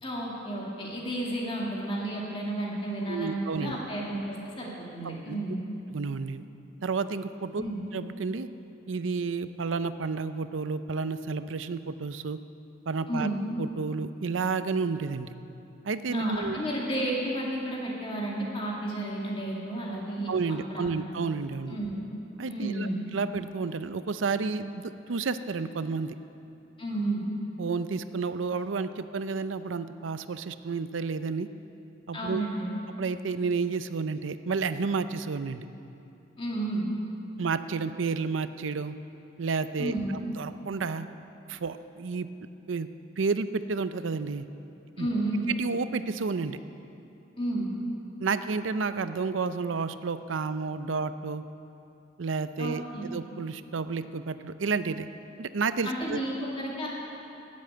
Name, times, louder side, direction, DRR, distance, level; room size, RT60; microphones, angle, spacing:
voice 1, 0.0-5.6 7.6-7.8 13.1-13.4 16.1-21.0 21.7-21.9 22.5-23.0 26.8-27.2 32.1-32.7 36.4-36.8 39.8-40.1 45.0-45.4 47.4-47.7 52.6-53.1 55.8-56.9, right 1 dB, 30° left, -4 dB, 2.1 m, -32 dB
voice 2, 3.1-3.8 5.0-5.4 5.9-6.4 6.8-7.6 7.9-8.5 8.9-12.4 12.9-13.3 13.6-15.3 15.8-16.6 20.3-21.8 22.4-26.1 27.6-31.5 32.1-32.4 33.0-35.7 37.4-38.9 39.4-39.9 40.4-41.1 41.5-42.3 42.7-42.9 43.2-44.5 45.0-45.1 45.5-46.6 48.2-51.4 52.2-55.1 55.4-56.2, right 4 dB, 80° right, 12 dB, 0.5 m, -31 dB
13.5 x 8.6 x 9.2 m, 2.9 s
head